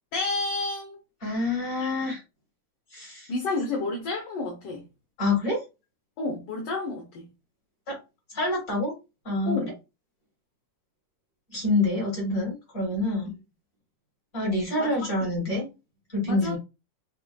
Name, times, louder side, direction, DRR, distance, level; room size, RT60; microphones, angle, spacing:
voice 1, 0.1-1.0 1.8-1.9 3.3-4.8 6.2-7.3 9.5-9.7 14.8-14.9 16.3-16.6, left 2 dB, 75° left, 1.4 m, -30 dB
voice 2, 1.2-2.2 2.9-3.3 5.2-5.6 7.9-8.0 8.3-8.9 9.2-9.7 11.5-13.3 14.3-15.7 16.1-16.6, left 2 dB, 50° left, 2.7 m, -27 dB
5.1 x 2.1 x 2.2 m
omnidirectional pair, 2.0 m